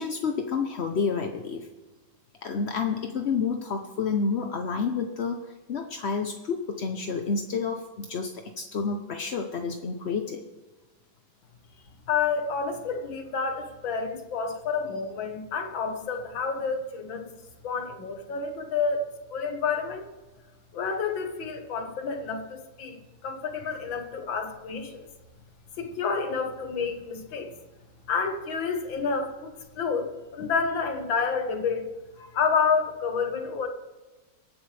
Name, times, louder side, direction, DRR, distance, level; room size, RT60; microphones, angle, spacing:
voice 1, 0.0-1.7 2.4-10.4, left 5 dB, 55° left, 0.7 m, -29 dB
voice 2, 12.1-17.3 17.6-20.1 20.7-25.1 25.8-27.5 28.1-31.9 32.2-33.7, left 5 dB, 85° left, 2.1 m, -29 dB
23.5 x 9.6 x 3.4 m
omnidirectional pair, 2.0 m